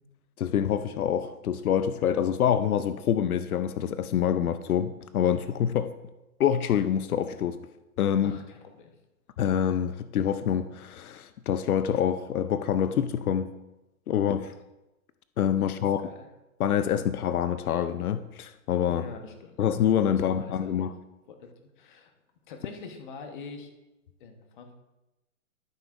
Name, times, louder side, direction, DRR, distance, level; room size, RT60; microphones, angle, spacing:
voice 1, 0.4-5.9 6.4-7.6 8.0-8.4 9.4-13.5 14.1-14.5 15.4-16.0 16.6-19.0 19.6-20.9, left 9 dB, 85° left, 11 dB, 0.7 m, -26 dB
voice 2, 8.2-8.9 15.8-16.3 18.9-19.6 20.1-20.9 21.3-21.5 21.8-22.1 22.5-23.7 24.2-24.7, left 4 dB, 35° left, 4 dB, 1.1 m, -44 dB
13.5 x 6.9 x 2.5 m, 0.99 s
hypercardioid pair, 160°, 43 cm